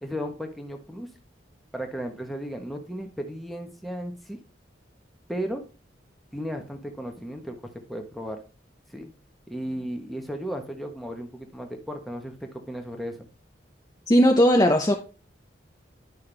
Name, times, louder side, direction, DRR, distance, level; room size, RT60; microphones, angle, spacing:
voice 1, 0.0-1.1 1.7-4.4 5.3-5.6 6.3-7.6 7.9-8.4 8.9-9.1 9.5-13.2, equal, ahead, 1.2 m, -35 dB
voice 2, 14.1-14.9, equal, 20° left, 0.7 m, -17 dB
10.5 x 5.7 x 3.4 m
head